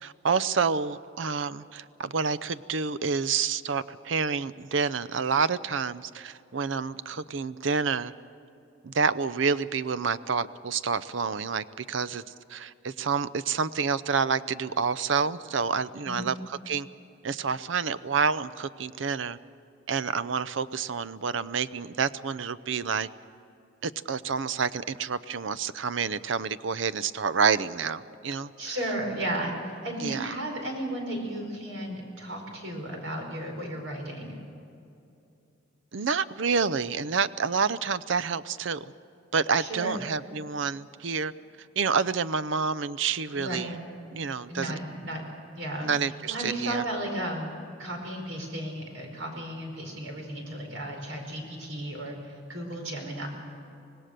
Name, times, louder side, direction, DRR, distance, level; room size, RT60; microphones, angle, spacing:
voice 1, 0.0-8.1 8.8-12.2 12.5-16.9 17.2-19.4 19.9-23.1 23.8-28.8 30.0-30.4 35.9-38.9 39.3-41.3 41.8-43.7 44.1-44.7 45.8-46.8, right 5 dB, 70° right, 15 dB, 0.6 m, -28 dB
voice 2, 16.0-16.3 28.6-34.4 39.6-39.9 43.3-43.8 44.5-45.3 45.5-45.9 46.3-47.5 47.8-53.3, right 1 dB, 90° right, 2 dB, 5.1 m, -34 dB
25.5 x 19.0 x 6.7 m, 2.7 s
head